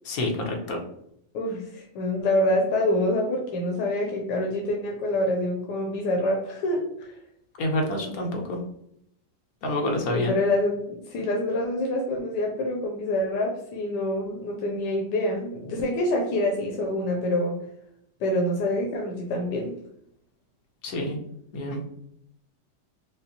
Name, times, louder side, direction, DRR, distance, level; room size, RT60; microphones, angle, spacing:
voice 1, 0.0-0.8 7.6-8.6 9.6-10.3 20.8-21.2 21.5-21.8, left 1 dB, 60° left, 1 dB, 1.2 m, -27 dB
voice 2, 1.3-7.2 10.1-17.6 18.2-19.8, left 1 dB, 85° left, 0 dB, 1.2 m, -26 dB
5.2 x 2.1 x 2.8 m, 0.73 s
omnidirectional pair, 1.8 m